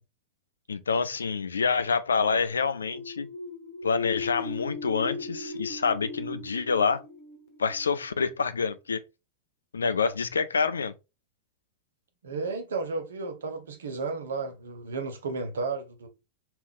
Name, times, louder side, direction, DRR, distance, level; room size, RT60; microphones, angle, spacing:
voice 1, 0.7-3.3 3.8-7.0 7.6-9.0 9.7-10.9, left 5 dB, 70° left, 0.4 m, -27 dB
sound 1, 2.7-8.4, left 3 dB, 50° left, 0.9 m, -38 dB
voice 2, 12.2-16.1, right 4 dB, 65° right, 0.7 m, -33 dB
3.4 x 2.5 x 3.6 m
figure-of-eight pair, 90°, 0 cm